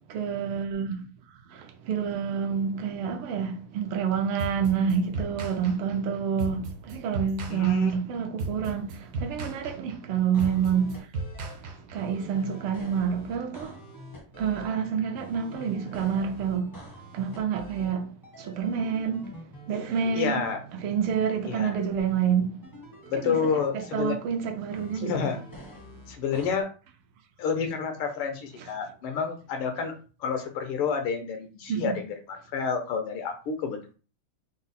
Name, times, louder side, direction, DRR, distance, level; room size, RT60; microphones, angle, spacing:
voice 1, 0.1-1.0 1.3-11.1 11.5-13.9 14.4-22.6 23.2-25.3 31.7-32.0, right 7 dB, 80° right, 1.6 m, -28 dB
sound 1, 4.4-12.2, right 3 dB, 60° right, 1.0 m, -35 dB
voice 2, 7.5-7.9 20.2-20.6 21.4-21.8 23.1-24.2 25.0-25.4 26.1-26.7 27.4-29.9 30.2-34.0, left 6 dB, 85° left, 1.8 m, -29 dB
sound 2, 10.3-11.5 11.9-14.7 15.1-17.9 18.2-21.1 22.6-24.1 24.7-26.6, equal, 20° left, 0.5 m, -46 dB
4.8 x 2.1 x 4.1 m
omnidirectional pair, 2.4 m